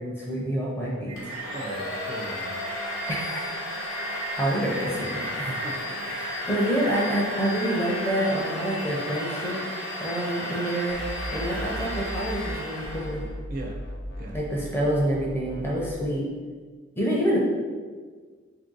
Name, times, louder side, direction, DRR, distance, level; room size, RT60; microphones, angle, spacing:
voice 1, 0.0-1.3 3.1-3.5 4.0-5.6 6.0-9.6 10.0-11.0 11.3-13.2 14.3-16.3 17.0-17.4, right 1 dB, 10° left, -4 dB, 0.5 m, -27 dB
Singing, 1.1-8.1, right 2 dB, 90° right, 0.6 m, -39 dB
Domestic sounds home sounds, 1.2-13.3, left 1 dB, 85° left, 0.9 m, -34 dB
voice 2, 1.5-2.6 5.3-6.2 13.5-13.8 14.2-14.4, right 1 dB, 45° right, 0 dB, 0.4 m, -37 dB
sound 1, 10.9-12.6 12.8-15.9, equal, 65° left, 0.5 m, -37 dB
3.2 x 2.6 x 3.8 m, 1.5 s
head